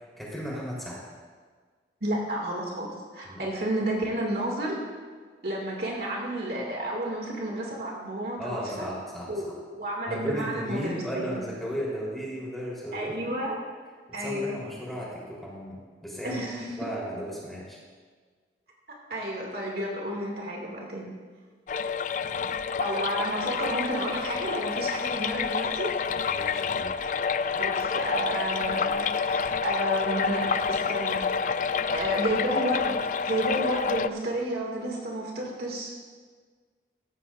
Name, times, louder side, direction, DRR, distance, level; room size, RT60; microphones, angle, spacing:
voice 1, 0.2-1.0 3.3-3.4 8.4-9.5 10.1-13.1 14.2-16.4 16.8-17.8 22.2-22.4 26.3-26.9, equal, ahead, -6 dB, 3.8 m, -35 dB
voice 2, 2.0-2.9 3.1-4.8 5.4-8.9 9.3-11.4 12.9-13.6 14.1-14.5 16.2-16.7 19.1-21.1 22.8-25.9 27.5-31.4 31.9-33.0 33.3-35.9, right 1 dB, 60° right, -2 dB, 2.4 m, -31 dB
sound 1, 21.7-34.1, left 6 dB, 45° left, 0.3 m, -28 dB
16.0 x 15.0 x 2.6 m, 1.6 s
head